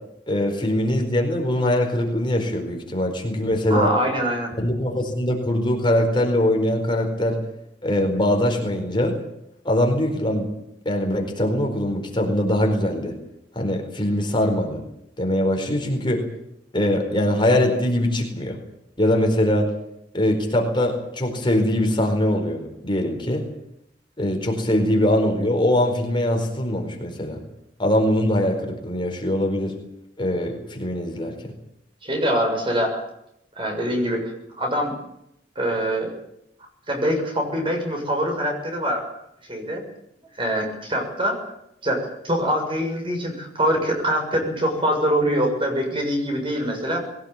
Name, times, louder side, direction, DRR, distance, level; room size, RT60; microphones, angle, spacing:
voice 1, 0.3-3.9 4.6-7.4 7.8-9.2 9.6-10.5 10.8-13.1 13.5-14.8 15.2-16.2 16.7-18.6 19.0-19.7 20.1-23.5 24.2-27.4 27.8-29.8 30.2-31.3, left 1 dB, 30° left, 2 dB, 4.5 m, -22 dB
voice 2, 3.7-4.5 32.0-33.0 33.6-34.3 34.6-35.0 35.6-36.1 36.9-39.0 39.5-39.8 40.4-41.4 41.8-47.0, equal, 30° right, 3 dB, 6.9 m, -24 dB
22.0 x 18.0 x 9.0 m, 0.79 s
head